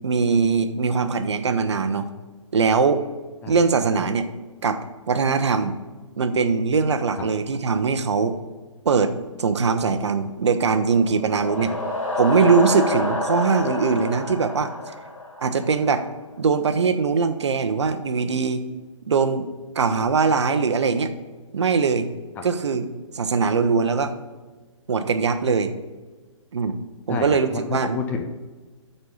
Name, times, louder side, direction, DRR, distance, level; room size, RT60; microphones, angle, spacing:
voice 1, 0.0-2.1 2.5-3.0 3.5-4.3 4.6-4.8 5.1-5.8 6.2-8.3 8.8-11.7 12.2-14.9 15.4-16.0 16.4-18.6 19.0-19.5 19.7-21.1 21.5-22.1 22.4-22.9 23.1-24.1 24.9-25.7 26.5-26.8 27.1-28.0, right 5 dB, 60° right, 9 dB, 0.8 m, -21 dB
sound 1, 11.0-15.8, left 1 dB, 80° left, 2.7 m, -28 dB
voice 2, 27.1-28.2, left 5 dB, 10° left, 4 dB, 0.4 m, -30 dB
9.3 x 4.4 x 5.4 m, 1.3 s
figure-of-eight pair, 130°, 17 cm